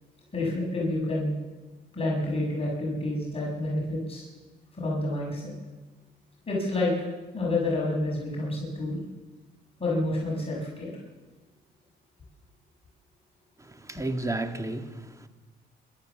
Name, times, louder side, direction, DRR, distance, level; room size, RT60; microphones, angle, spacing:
voice 1, 0.3-1.3 1.9-4.2 4.7-5.5 6.5-7.1 7.3-9.0 9.8-10.9 13.9-14.1, left 2 dB, 30° left, 6.9 m, -29 dB
voice 2, 13.6-15.3, right 2 dB, 15° right, 1.9 m, -33 dB
27.5 x 13.0 x 7.2 m
cardioid pair, 90°, 20 cm